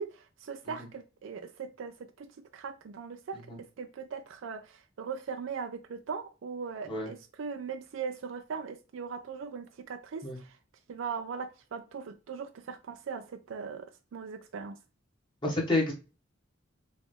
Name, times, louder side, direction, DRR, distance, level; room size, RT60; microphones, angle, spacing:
voice 1, 0.0-10.6 10.9-14.8, right 5 dB, 75° right, 0.4 m, -40 dB
voice 2, 15.4-15.9, left 2 dB, 25° left, 1.0 m, -28 dB
4.0 x 2.4 x 3.1 m
head